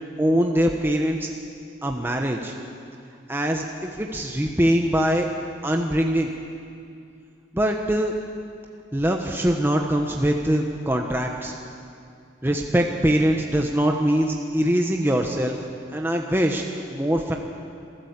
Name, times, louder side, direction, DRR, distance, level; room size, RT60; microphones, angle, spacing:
voice 1, 0.2-1.3 1.8-2.5 3.3-5.3 5.6-6.3 7.5-8.1 8.9-11.5 12.4-15.6 15.9-16.6 16.9-17.4, equal, 10° right, 2 dB, 1.0 m, -22 dB
26.5 x 13.0 x 8.2 m, 2.5 s
head